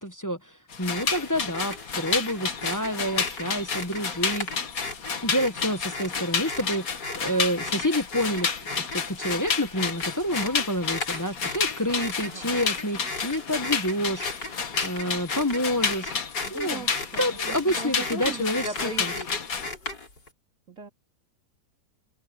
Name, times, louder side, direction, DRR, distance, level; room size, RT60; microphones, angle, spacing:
voice 1, 0.0-4.5 5.2-8.5 8.8-16.1 16.5-16.8 17.2-19.1, equal, 15° left, 0.9 m, -28 dB
sound 1, 0.7-19.7, left 5 dB, 55° left, 2.0 m, -31 dB
sound 2, 0.8-20.3, left 3 dB, 80° left, 5.7 m, -37 dB
voice 2, 16.5-19.3 20.7-20.9, right 2 dB, 45° right, 4.0 m, -38 dB
omnidirectional pair, 1.9 m